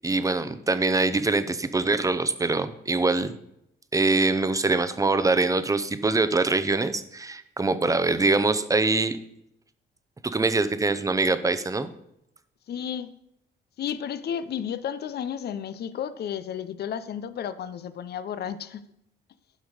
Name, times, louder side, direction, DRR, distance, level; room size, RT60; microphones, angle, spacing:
voice 1, 0.0-3.3 3.9-9.2 10.3-11.9, right 3 dB, 15° right, 11 dB, 0.7 m, -23 dB
voice 2, 12.7-13.1 13.8-18.8, left 8 dB, 55° left, 13 dB, 0.6 m, -32 dB
11.5 x 5.2 x 4.9 m, 0.79 s
cardioid pair, 90°, 20 cm